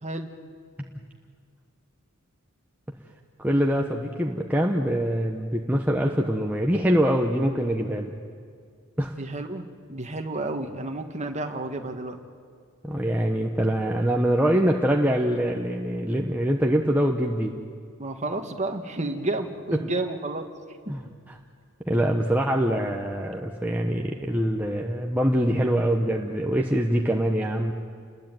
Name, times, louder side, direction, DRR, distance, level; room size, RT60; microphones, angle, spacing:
voice 1, 3.4-8.1 9.0-9.2 12.8-17.5 19.7-19.8 20.9-21.4 21.9-27.7, equal, 10° right, 0 dB, 1.2 m, -24 dB
voice 2, 9.2-9.6 9.9-12.2 18.0-20.5, right 2 dB, 30° right, 4 dB, 1.8 m, -31 dB
29.5 x 21.0 x 9.2 m, 2.1 s
head